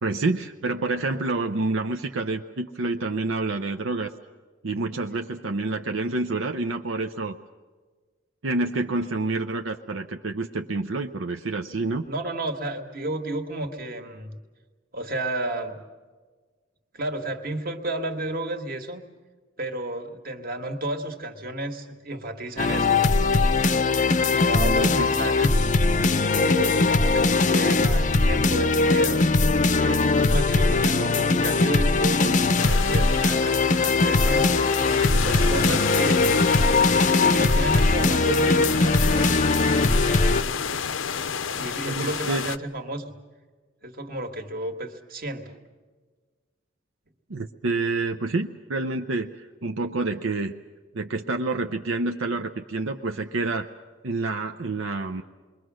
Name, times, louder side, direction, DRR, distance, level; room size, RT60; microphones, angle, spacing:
voice 1, 0.0-4.1 4.6-7.4 8.4-12.0 24.6-25.1 41.8-42.5 47.3-50.5 50.9-53.7 54.0-55.2, right 3 dB, 80° right, 5 dB, 0.8 m, -28 dB
voice 2, 12.0-14.4 14.9-15.8 16.9-19.0 19.6-23.2 24.3-25.6 26.3-29.3 29.8-34.5 35.2-36.5 37.0-39.3 41.6-43.1 43.8-45.6, right 1 dB, 45° right, 5 dB, 1.9 m, -32 dB
sound 1, 22.6-40.4, left 3 dB, 40° left, 0.6 m, -20 dB
sound 2, 32.6-42.6, left 7 dB, 80° left, 0.7 m, -30 dB
28.0 x 22.5 x 6.3 m, 1.4 s
head